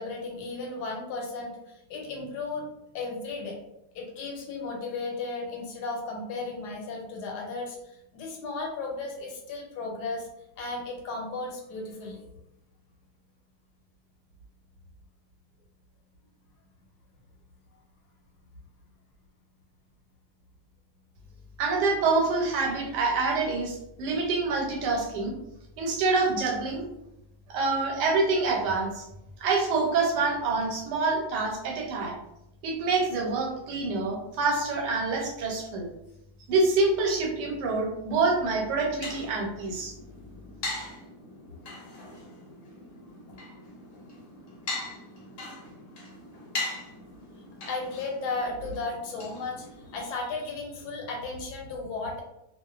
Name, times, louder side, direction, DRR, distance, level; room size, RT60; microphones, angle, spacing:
voice 1, 0.0-2.7 2.9-3.6 3.9-10.3 10.6-12.2 41.5-41.6 42.1-42.2 47.7-52.2, left 3 dB, 80° left, 0 dB, 1.2 m, -35 dB
voice 2, 21.6-25.3 25.8-26.8 27.5-29.0 29.4-32.2 32.6-35.9 36.5-39.9, right 3 dB, 90° right, 0 dB, 1.2 m, -26 dB
sound 1, 38.4-50.1, left 2 dB, 60° left, 0.9 m, -40 dB
2.4 x 2.4 x 2.3 m, 0.87 s
omnidirectional pair, 1.8 m